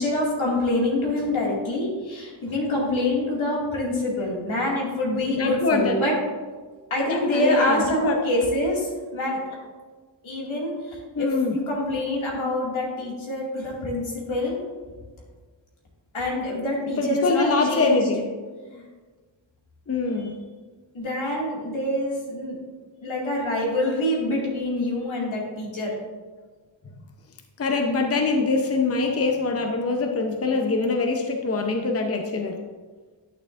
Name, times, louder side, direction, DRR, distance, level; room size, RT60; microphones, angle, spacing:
voice 1, 0.0-6.1 6.9-9.4 10.2-14.6 16.1-18.1 18.7-18.8 20.2-20.3 20.9-22.6 23.0-25.9, left 1 dB, 80° left, -3 dB, 2.4 m, -26 dB
voice 2, 5.3-5.9 7.1-8.2 11.1-11.6 17.0-18.3 19.9-20.4 27.6-32.6, left 3 dB, 30° left, 3 dB, 0.7 m, -23 dB
11.0 x 6.8 x 2.6 m, 1.4 s
wide cardioid pair, 85°, 47 cm